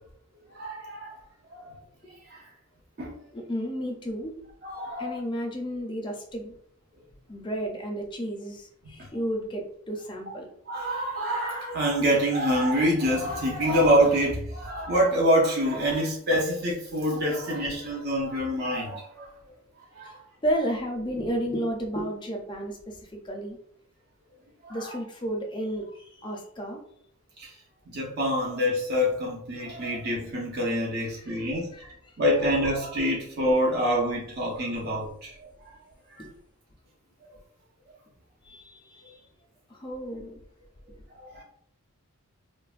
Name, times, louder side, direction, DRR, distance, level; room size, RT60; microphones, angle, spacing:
voice 1, 0.5-1.1 1.5-1.7 2.3-2.4 3.0-3.1 4.6-5.2 10.7-19.3 19.9-20.2 24.6-24.9 27.4-27.5 27.9-31.9 32.2-35.5 36.2-36.3 41.2-41.4, equal, 45° right, -3 dB, 0.6 m, -26 dB
voice 2, 3.3-4.3 5.0-6.5 7.3-10.5 20.0-20.2 20.4-23.6 24.7-26.8 31.0-32.1 36.2-36.3 38.4-39.2 39.7-40.4, equal, 20° left, 1 dB, 0.4 m, -32 dB
3.1 x 2.1 x 2.4 m, 0.67 s
head